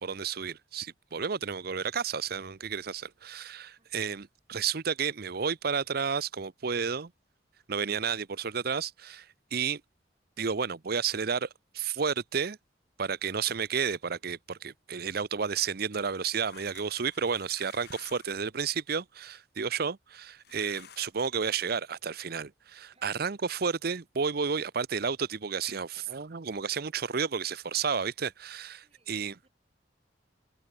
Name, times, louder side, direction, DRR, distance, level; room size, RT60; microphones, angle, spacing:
voice 1, 0.0-7.1 7.7-9.8 10.4-11.5 11.7-12.6 13.0-29.3, right 6 dB, 55° right, 0.7 m, -32 dB
sound 1, 16.2-18.4 20.4-21.5, left 8 dB, 60° left, 2.9 m, -52 dB
voice 2, 22.9-23.4 28.8-29.5, right 4 dB, 35° right, 7.1 m, -67 dB
head